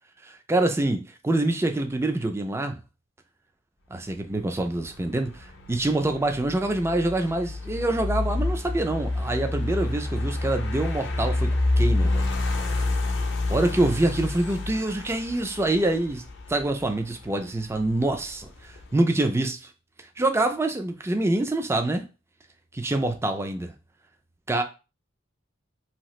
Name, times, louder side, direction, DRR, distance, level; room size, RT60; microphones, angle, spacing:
voice 1, 0.2-2.8 3.9-11.5 11.8-12.3 13.5-16.2 16.5-19.7 20.2-22.0 22.7-23.7 24.5-24.6, right 2 dB, 15° right, 0.4 m, -25 dB
sound 1, 4.2-19.0, left 2 dB, 65° left, 0.6 m, -29 dB
2.8 x 2.4 x 3.0 m
head